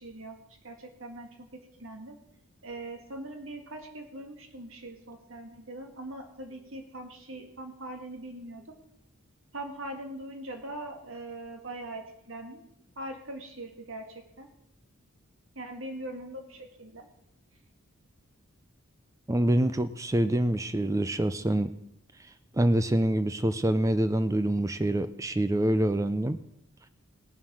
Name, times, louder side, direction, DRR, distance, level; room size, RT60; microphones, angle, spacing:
voice 1, 0.0-2.2 2.6-8.8 9.5-12.6 13.0-14.5 15.6-17.1, right 1 dB, 65° right, 4 dB, 2.1 m, -41 dB
voice 2, 19.3-21.7 22.5-26.4, right 1 dB, 15° right, 12 dB, 0.4 m, -26 dB
18.5 x 7.4 x 6.3 m, 0.80 s
head